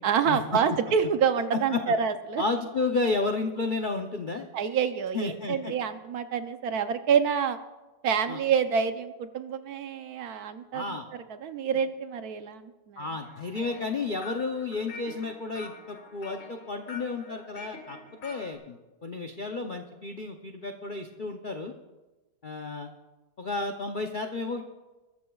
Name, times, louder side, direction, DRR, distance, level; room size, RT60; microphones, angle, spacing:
voice 1, 0.0-2.4 4.5-7.6 8.0-11.0 11.3-13.0, right 7 dB, 65° right, 9 dB, 1.1 m, -27 dB
voice 2, 2.4-4.5 5.1-5.7 8.3-8.4 10.7-11.0 13.0-18.0 18.2-21.7 22.4-22.9 23.4-24.6, left 3 dB, 55° left, 4 dB, 0.5 m, -32 dB
sound 1, 13.2-18.6, left 3 dB, 80° left, 2.2 m, -46 dB
21.0 x 13.5 x 2.3 m, 1.1 s
omnidirectional pair, 1.8 m